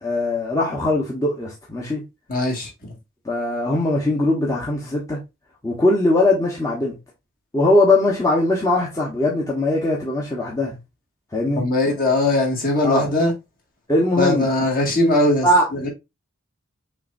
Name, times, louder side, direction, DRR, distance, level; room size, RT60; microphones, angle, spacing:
voice 1, 0.0-2.0 3.2-5.2 5.6-6.9 7.5-10.8 11.3-11.7 12.8-13.1 13.9-14.5 15.4-15.6, left 2 dB, 15° left, 1.0 m, -20 dB
voice 2, 2.3-2.7 11.6-13.3 14.2-15.5 15.7-15.9, left 2 dB, 40° left, 1.9 m, -20 dB
5.8 x 3.2 x 2.5 m
head